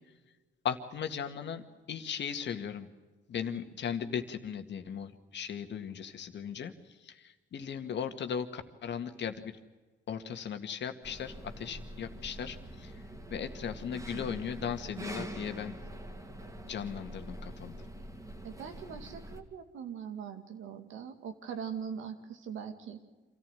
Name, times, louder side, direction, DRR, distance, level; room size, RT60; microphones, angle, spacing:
voice 1, 0.6-1.6 1.9-2.9 3.3-9.6 10.1-13.0 13.3-15.7 16.7-17.7, left 7 dB, 60° left, 7 dB, 2.0 m, -37 dB
sound 1, 11.0-19.4, right 1 dB, 15° right, 2.8 m, -44 dB
voice 2, 18.4-23.0, right 7 dB, 80° right, 6 dB, 2.4 m, -41 dB
26.5 x 14.5 x 9.1 m, 1.3 s
cardioid pair, 90°, 20 cm